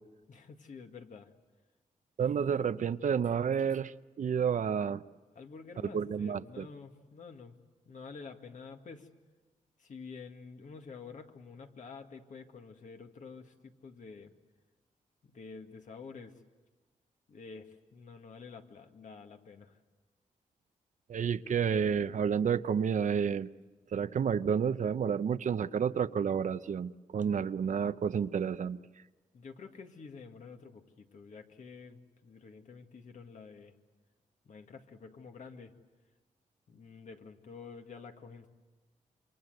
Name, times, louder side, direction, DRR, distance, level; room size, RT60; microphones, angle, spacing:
voice 1, 0.3-1.3 5.3-7.6 7.8-9.1 9.8-14.3 15.2-16.4 17.3-19.8 29.3-33.8 34.5-35.7 36.7-38.5, left 5 dB, 65° left, 5 dB, 2.0 m, -49 dB
voice 2, 2.2-5.0 5.9-6.7 21.1-23.5 23.9-28.8, right 7 dB, 65° right, 13 dB, 0.7 m, -30 dB
27.0 x 23.5 x 7.9 m, 1.3 s
cardioid pair, 90°, 14 cm